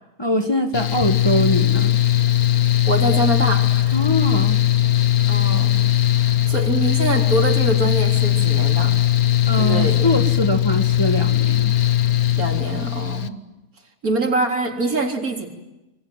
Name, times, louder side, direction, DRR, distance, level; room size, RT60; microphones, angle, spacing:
voice 1, 0.2-2.0 3.9-4.6 9.5-11.7, equal, 15° left, 6 dB, 1.8 m, -22 dB
Mechanical fan, 0.7-13.3, left 13 dB, 85° left, 1.7 m, -19 dB
voice 2, 2.9-4.0 5.3-5.9 6.2-9.0 9.6-10.1 10.5-10.6 12.4-13.4 14.0-15.5, right 2 dB, 80° right, 3 dB, 4.1 m, -24 dB
26.5 x 24.5 x 9.2 m, 0.99 s
omnidirectional pair, 1.5 m